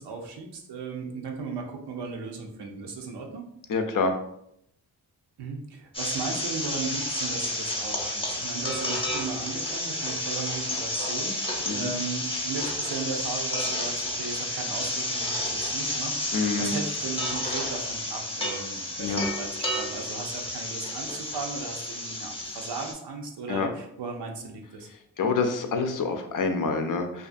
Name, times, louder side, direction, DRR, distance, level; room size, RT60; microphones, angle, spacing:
voice 1, 0.0-3.4 5.4-24.9, right 4 dB, 85° right, 2 dB, 0.6 m, -36 dB
voice 2, 3.7-4.1 11.7-11.9 16.3-16.7 19.0-19.3 23.5-23.7 25.2-27.3, left 4 dB, 55° left, 5 dB, 0.5 m, -27 dB
sound 1, 5.9-22.9, left 1 dB, 15° left, 0.7 m, -31 dB
2.5 x 2.3 x 2.5 m, 0.74 s
cardioid pair, 50°, 40 cm